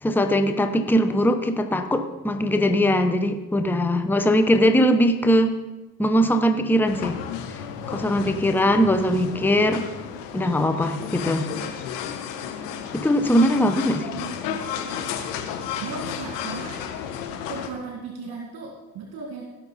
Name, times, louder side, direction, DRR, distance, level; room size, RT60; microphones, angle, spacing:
voice 1, 0.0-5.5 6.0-7.2 7.9-9.8 10.3-11.5 12.9-14.1, equal, 5° left, 7 dB, 0.9 m, -21 dB
sound 1, 6.9-17.7, left 8 dB, 75° left, 1.3 m, -33 dB
voice 2, 14.1-14.6 15.8-16.8 17.5-19.4, right 4 dB, 50° right, 1 dB, 2.0 m, -36 dB
17.0 x 6.0 x 4.1 m, 1.1 s
hypercardioid pair, 60°, 49 cm